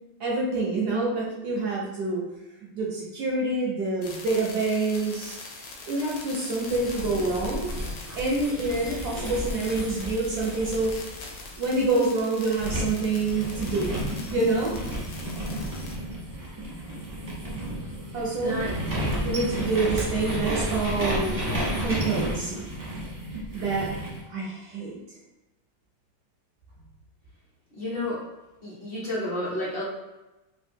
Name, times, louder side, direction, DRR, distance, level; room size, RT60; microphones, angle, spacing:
voice 1, 0.2-2.2 2.7-5.4 5.9-7.7 8.2-10.9 11.6-13.9 14.3-14.8 18.1-18.6 19.2-21.3 21.8-22.6 23.5-23.9 24.3-25.0, right 3 dB, 70° right, -4 dB, 0.9 m, -27 dB
sound 1, 4.0-16.0, left 3 dB, 75° left, 1.4 m, -43 dB
sound 2, 6.7-12.1 12.6-24.2, equal, 30° right, 0.6 m, -32 dB
voice 2, 18.4-18.7 19.5-19.9 27.7-28.2 28.6-29.8, left 1 dB, 45° left, -8 dB, 0.7 m, -31 dB
3.4 x 2.4 x 2.7 m, 1.0 s
omnidirectional pair, 2.4 m